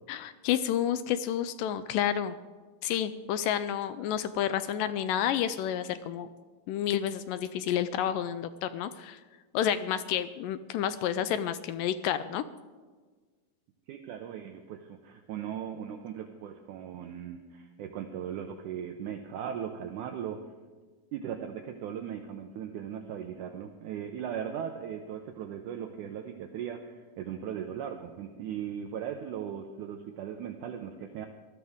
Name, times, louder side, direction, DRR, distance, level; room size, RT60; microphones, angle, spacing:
voice 1, 0.1-2.4 2.8-6.3 6.7-9.2 9.5-12.4, left 10 dB, 80° left, 12 dB, 2.1 m, -30 dB
voice 2, 13.9-20.4 21.1-31.3, right 8 dB, 75° right, 5 dB, 2.0 m, -38 dB
19.5 x 13.0 x 3.6 m, 1.4 s
omnidirectional pair, 4.0 m